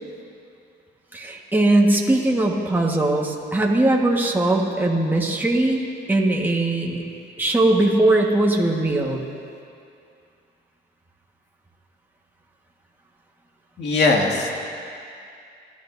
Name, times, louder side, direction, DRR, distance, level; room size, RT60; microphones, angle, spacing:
voice 1, 1.1-5.8 6.1-7.0 7.4-9.2, right 2 dB, 10° right, -1 dB, 1.5 m, -20 dB
voice 2, 13.8-14.5, left 3 dB, 60° left, 0 dB, 2.2 m, -19 dB
29.0 x 11.5 x 2.7 m, 2.5 s
cardioid pair, 90°, 20 cm